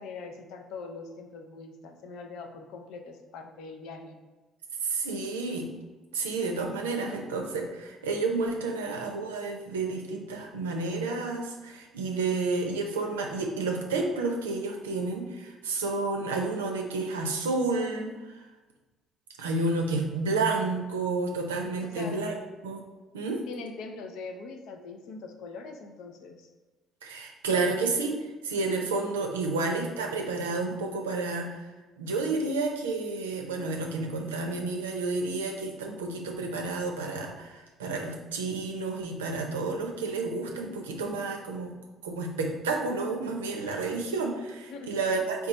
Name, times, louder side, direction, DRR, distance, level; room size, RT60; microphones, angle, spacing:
voice 1, 0.0-4.2 21.8-22.2 23.5-26.5 44.7-45.3, left 4 dB, 70° left, 5 dB, 0.5 m, -42 dB
voice 2, 4.8-5.7 6.1-18.1 19.4-22.3 22.6-22.8 23.1-23.4 27.0-31.7 32.0-41.7 42.0-45.5, right 3 dB, 85° right, 2 dB, 0.5 m, -30 dB
4.0 x 2.3 x 3.9 m, 1.2 s
hypercardioid pair, 55°, 0 cm